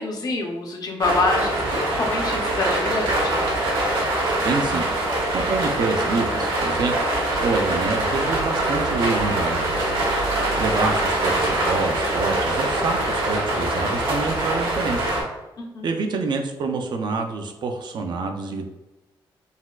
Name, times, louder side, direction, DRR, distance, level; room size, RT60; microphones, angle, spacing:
voice 1, 0.0-3.5 10.5-10.7 15.6-15.9, left 2 dB, 45° left, 1 dB, 0.6 m, -26 dB
sound 1, 1.0-15.2, right 1 dB, 75° right, 1.1 m, -23 dB
voice 2, 4.5-4.9 5.3-6.9 7.4-9.9 10.6-15.1 15.8-18.7, right 4 dB, 60° right, 5 dB, 0.4 m, -26 dB
4.0 x 2.2 x 2.3 m, 1.0 s
cardioid pair, 110°, 9 cm